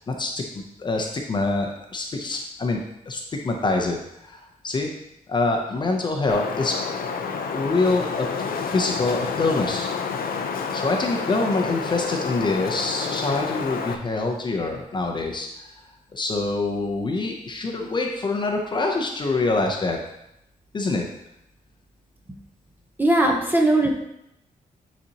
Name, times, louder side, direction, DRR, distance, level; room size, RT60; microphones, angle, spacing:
voice 1, 0.1-4.9 5.3-6.8 7.5-8.3 8.7-9.9 10.7-15.7 16.1-20.0 20.7-21.1, left 3 dB, 30° left, 2 dB, 0.7 m, -25 dB
Wind, 6.3-13.9, left 5 dB, 85° left, 0.6 m, -29 dB
voice 2, 23.0-23.9, right 1 dB, 15° right, 1 dB, 0.9 m, -19 dB
9.6 x 4.2 x 2.9 m, 0.82 s
wide cardioid pair, 160°, 15 cm